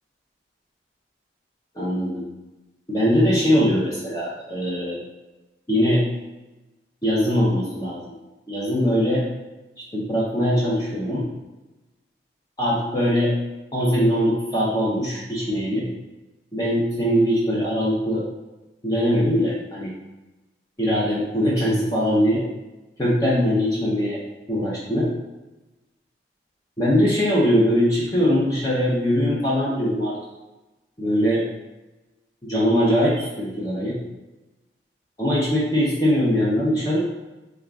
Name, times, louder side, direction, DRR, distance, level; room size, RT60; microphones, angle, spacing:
voice 1, 1.8-2.2 2.9-5.0 5.7-6.0 7.0-8.0 8.5-9.2 9.9-11.3 12.6-13.3 13.7-15.9 16.5-18.2 18.8-19.9 20.8-22.4 23.0-24.2 24.5-25.1 26.8-30.1 31.0-31.4 32.4-34.0 35.2-37.0, equal, 20° left, -6 dB, 0.6 m, -21 dB
3.6 x 2.3 x 3.4 m, 1.1 s
head